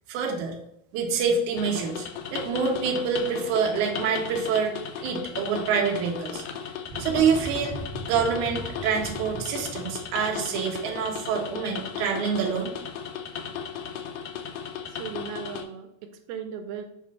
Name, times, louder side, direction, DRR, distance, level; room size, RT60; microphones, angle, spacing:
voice 1, 0.1-0.6 0.9-4.7 5.0-6.4 7.0-7.8 8.1-12.7, right 6 dB, 70° right, 1 dB, 2.1 m, -26 dB
sound 1, 1.6-15.6, left 8 dB, 80° left, 1.8 m, -36 dB
sound 2, 6.9-11.7, right 2 dB, 45° right, 1.8 m, -39 dB
voice 2, 14.9-16.8, right 7 dB, 85° right, 6 dB, 2.5 m, -37 dB
7.3 x 2.5 x 5.3 m, 0.77 s
omnidirectional pair, 4.3 m